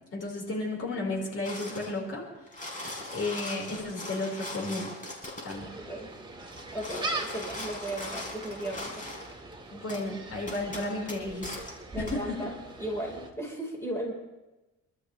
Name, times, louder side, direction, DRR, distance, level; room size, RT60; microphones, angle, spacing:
voice 1, 0.1-2.3 3.1-4.9 5.4-5.7 9.7-11.5 12.0-12.5, left 2 dB, 50° left, -2 dB, 5.3 m, -33 dB
sound 1, 1.4-2.0 2.4-5.6 6.5-9.3 9.9-10.0 10.5-11.7 12.1-12.2, left 1 dB, 25° left, 5.1 m, -40 dB
Gull seagull, 5.5-13.3, right 2 dB, 15° right, 2.4 m, -41 dB
voice 2, 5.8-6.2 6.7-9.0 11.9-12.5 12.8-14.1, right 1 dB, 10° left, -2 dB, 4.7 m, -36 dB
28.0 x 13.0 x 3.4 m, 1.1 s
cardioid pair, 90°, 30 cm